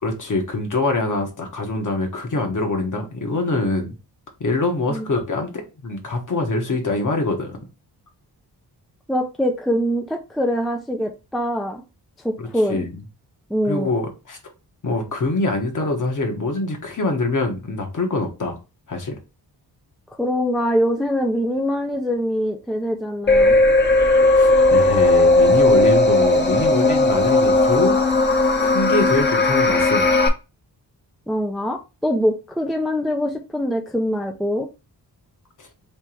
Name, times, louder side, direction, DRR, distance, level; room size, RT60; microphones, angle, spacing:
voice 1, 0.0-3.9 4.4-5.5 5.8-7.6 12.4-12.9 13.6-14.4 14.8-18.6 18.9-19.2 24.4-27.9 28.6-30.1 35.6-35.7, left 2 dB, 45° left, 1.3 m, -24 dB
voice 2, 9.1-11.8 12.2-12.9 13.5-14.0 20.2-23.5 31.3-34.7, equal, ahead, 0.4 m, -23 dB
sound 1, 23.3-30.3, left 2 dB, 25° left, 0.9 m, -16 dB
3.4 x 2.9 x 4.4 m
wide cardioid pair, 120°, 41 cm